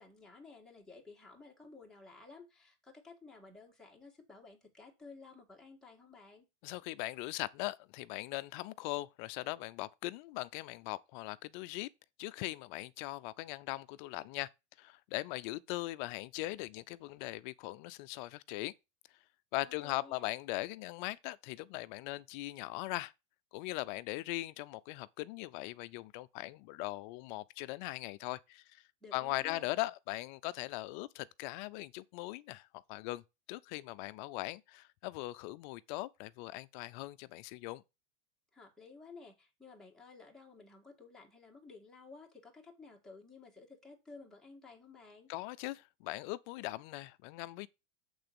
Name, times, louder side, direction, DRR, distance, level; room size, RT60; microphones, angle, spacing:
voice 1, 0.0-6.5 19.6-20.3 29.0-29.7 38.5-45.3, left 4 dB, ahead, 1.8 m, -54 dB
voice 2, 6.6-11.9 12.2-14.5 14.8-18.7 19.5-23.1 23.5-28.6 29.1-33.2 33.5-37.8 45.3-47.7, left 18 dB, 40° left, 0.5 m, -40 dB
7.9 x 3.9 x 6.8 m
supercardioid pair, 145°, 37 cm